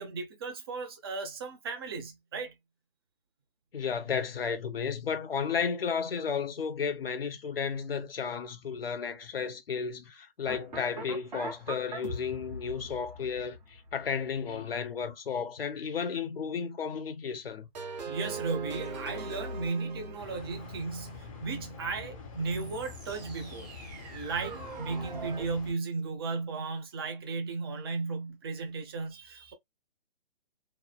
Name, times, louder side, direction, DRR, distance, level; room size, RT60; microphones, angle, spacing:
voice 1, 0.0-2.5 18.0-23.7 24.1-29.5, right 4 dB, 25° right, 0.6 m, -35 dB
voice 2, 3.7-17.7, left 6 dB, 65° left, 0.8 m, -33 dB
sound 1, 10.5-14.5 17.8-21.5 22.5-25.5, right 3 dB, 45° right, 1.1 m, -42 dB
sound 2, 20.2-25.7, left 5 dB, 35° left, 0.8 m, -46 dB
3.0 x 2.1 x 2.2 m
hypercardioid pair, 150°, 31 cm